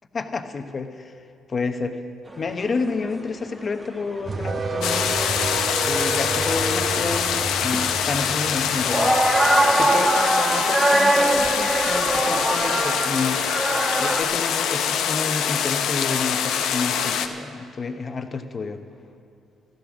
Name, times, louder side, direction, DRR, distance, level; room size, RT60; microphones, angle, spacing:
voice 1, 0.1-1.1 1.5-2.0 2.4-13.4 14.0-18.8, left 4 dB, 40° left, 7 dB, 1.0 m, -30 dB
sound 1, 2.3-2.4 2.7-2.8 3.0-3.5 3.9-5.3 5.6-14.2, right 1 dB, 15° right, 1.3 m, -23 dB
sound 2, 4.3-9.9, right 3 dB, 40° right, 0.8 m, -30 dB
sound 3, 4.8-17.3, left 8 dB, 85° left, 0.8 m, -24 dB
14.0 x 12.0 x 6.2 m, 2.6 s
cardioid pair, 90°, 0 cm